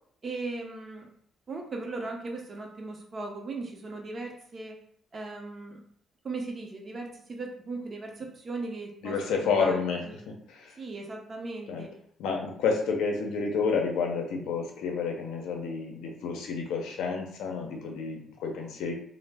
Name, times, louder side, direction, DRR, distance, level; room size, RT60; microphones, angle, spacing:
voice 1, 0.2-1.1 1.5-4.8 5.1-5.8 6.2-9.8 10.1-10.2 10.8-11.9, right 3 dB, 40° right, 1 dB, 0.6 m, -38 dB
voice 2, 9.0-10.8 11.7-11.9 12.2-18.9, left 5 dB, 85° left, 1 dB, 0.5 m, -30 dB
2.1 x 2.0 x 3.3 m, 0.63 s
cardioid pair, 90°, 0 cm